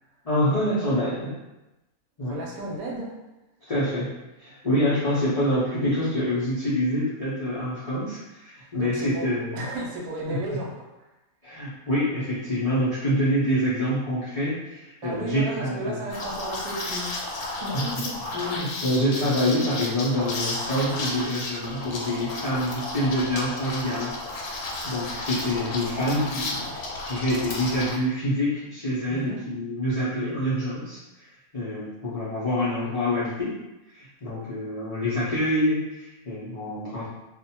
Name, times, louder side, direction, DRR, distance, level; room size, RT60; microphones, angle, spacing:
voice 1, 0.2-1.3 2.2-2.4 3.7-4.1 4.4-9.6 10.3-10.4 11.4-16.0 17.7-17.8 18.3-24.1 24.4-24.5 24.8-31.3 31.5-33.5 33.9-37.1, equal, 55° left, -10 dB, 0.4 m, -26 dB
voice 2, 2.2-3.2 8.5-11.1 15.0-18.4 29.1-29.5, right 1 dB, 85° right, -2 dB, 1.1 m, -34 dB
Liquid, 16.1-28.0, left 2 dB, 85° left, 1.1 m, -33 dB
2.5 x 2.1 x 2.8 m, 1.0 s
omnidirectional pair, 1.5 m